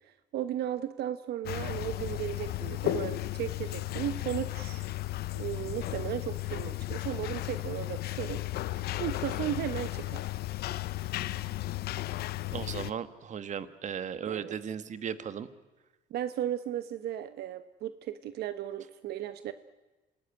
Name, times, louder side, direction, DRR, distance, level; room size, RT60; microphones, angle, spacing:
voice 1, 0.0-4.9 5.3-8.4 8.7-10.3 14.3-14.6 16.1-19.5, right 11 dB, 70° right, 12 dB, 1.1 m, -35 dB
sound 1, 1.4-12.9, left 16 dB, 70° left, 0.8 m, -34 dB
voice 2, 12.5-15.5, right 8 dB, 45° right, 12 dB, 1.6 m, -36 dB
27.5 x 19.0 x 9.7 m, 1.1 s
cardioid pair, 110°, 17 cm